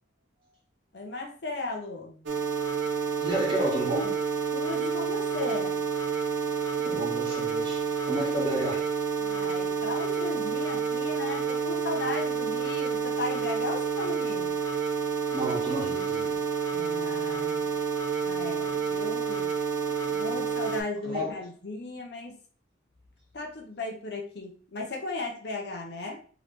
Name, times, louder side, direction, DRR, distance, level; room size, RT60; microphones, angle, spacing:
voice 1, 0.9-2.2 4.5-5.9 9.2-14.6 16.7-17.7 18.2-19.5 20.2-22.3 23.3-26.2, left 3 dB, 55° left, 0.9 m, -36 dB
sound 1, 2.3-20.8, right 6 dB, 75° right, 0.9 m, -29 dB
voice 2, 3.2-4.1 6.8-8.8 15.3-16.4 21.0-21.3, right 1 dB, 25° right, 1.4 m, -31 dB
3.7 x 3.2 x 3.2 m
head